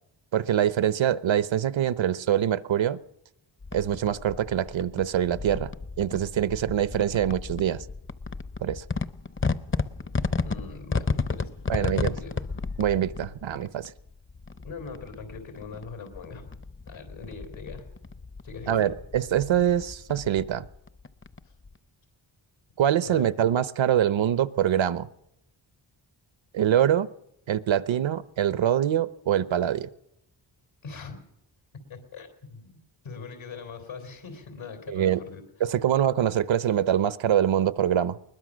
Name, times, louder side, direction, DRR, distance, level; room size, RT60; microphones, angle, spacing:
voice 1, 0.3-3.0 3.7-5.7 6.0-7.8 8.6-8.8 11.7-12.1 12.8-13.9 18.7-20.7 22.8-25.1 26.5-27.1 27.5-29.9 34.9-35.2 35.6-38.2, right 10 dB, 75° right, 15 dB, 0.9 m, -24 dB
sound 1, 3.6-21.8, left 4 dB, 25° left, 0.7 m, -34 dB
voice 2, 10.4-12.3 14.6-16.6 16.9-17.9 18.4-18.9 21.4-21.5 23.0-23.3 30.8-31.2 31.9-32.8 33.0-35.4, left 5 dB, 85° left, 5 dB, 3.6 m, -41 dB
21.5 x 20.5 x 6.3 m, 0.80 s
wide cardioid pair, 130°, 46 cm